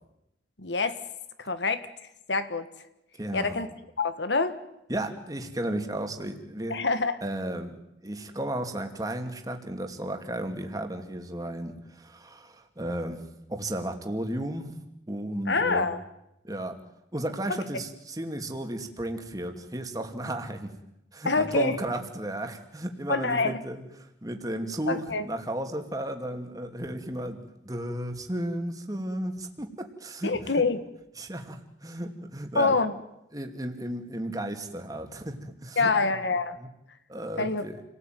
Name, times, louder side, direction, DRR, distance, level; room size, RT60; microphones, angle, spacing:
voice 1, 0.6-1.0 1.4-2.7 3.3-3.7 4.0-4.5 6.7-7.2 15.5-16.0 21.2-21.8 23.1-23.6 24.9-25.3 30.2-30.8 32.5-32.9 35.8-36.6 37.4-37.6, left 3 dB, 85° left, 11 dB, 1.6 m, -26 dB
voice 2, 3.2-3.6 4.9-6.8 7.2-13.2 13.5-14.8 15.1-15.9 16.4-16.8 17.1-20.7 21.1-23.8 24.2-30.6 31.2-32.8 33.3-35.9 36.6-36.7 37.1-37.8, right 1 dB, 20° right, 5 dB, 2.6 m, -34 dB
29.0 x 18.5 x 9.3 m, 0.86 s
head